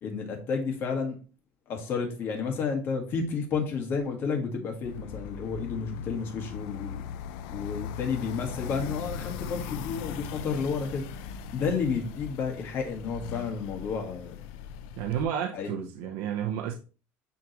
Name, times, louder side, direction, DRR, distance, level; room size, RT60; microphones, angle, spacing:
voice 1, 0.0-1.2 1.7-7.1 7.5-14.4 15.5-15.9, left 5 dB, 40° left, 1.7 m, -31 dB
sound 1, 4.8-15.2, left 8 dB, 85° left, 0.6 m, -39 dB
voice 2, 15.0-16.7, right 9 dB, 70° right, 0.7 m, -31 dB
9.5 x 3.7 x 3.0 m
cardioid pair, 170°, 6 cm